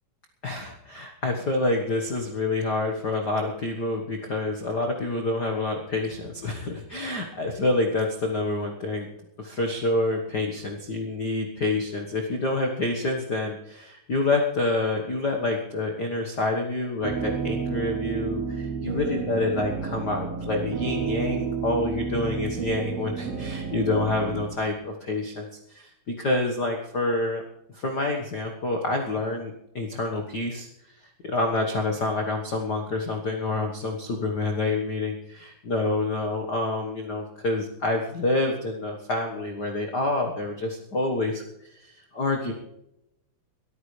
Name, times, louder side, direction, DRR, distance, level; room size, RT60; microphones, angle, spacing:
voice 1, 0.4-9.1 9.4-27.4 27.7-42.5, left 2 dB, 75° left, 2 dB, 0.9 m, -27 dB
sound 1, 17.0-24.4, right 6 dB, 85° right, 4.1 m, -31 dB
23.5 x 14.0 x 3.3 m, 0.84 s
omnidirectional pair, 4.2 m